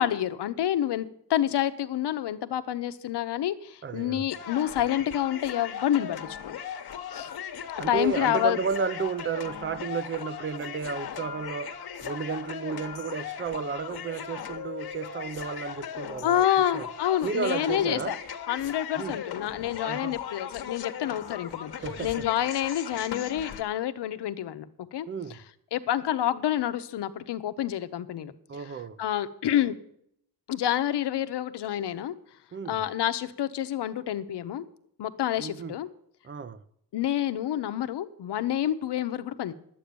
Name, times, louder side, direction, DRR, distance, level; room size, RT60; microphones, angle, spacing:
voice 1, 0.0-6.6 7.1-7.3 7.9-8.6 16.2-18.2 18.5-21.7 22.0-25.1 25.7-28.3 29.0-29.7 30.5-32.1 32.7-34.6 35.0-35.9 36.9-39.5, left 11 dB, 90° left, 0.9 m, -28 dB
voice 2, 3.8-4.3 7.8-16.4 16.7-16.9 17.2-18.2 19.0-19.2 19.8-20.2 21.8-22.3 25.1-25.4 28.5-29.0 32.5-32.8 35.4-35.7 36.2-36.6, right 5 dB, 30° right, 0.6 m, -33 dB
sound 1, 4.3-23.6, left 8 dB, 65° left, 1.3 m, -38 dB
11.5 x 8.5 x 6.9 m
wide cardioid pair, 120°, 40 cm